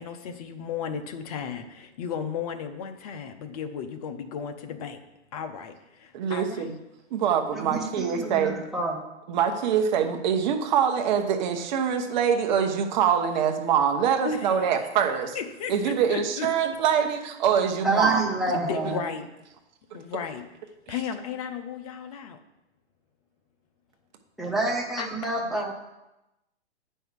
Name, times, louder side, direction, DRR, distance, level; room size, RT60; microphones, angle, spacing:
voice 1, 0.0-5.0 5.3-6.8 14.2-14.7 15.3-16.5 18.5-19.3 19.9-20.4 20.9-22.4 25.0-25.6, left 6 dB, 35° left, 8 dB, 0.7 m, -34 dB
voice 2, 6.1-6.7 7.1-8.5 9.3-15.4 15.7-18.2 20.9-21.0, right 7 dB, 40° right, 5 dB, 1.2 m, -24 dB
voice 3, 7.5-9.1 17.8-19.0 24.4-25.7, right 2 dB, ahead, -2 dB, 0.4 m, -28 dB
9.0 x 5.6 x 6.2 m, 0.95 s
hypercardioid pair, 145°, 35 cm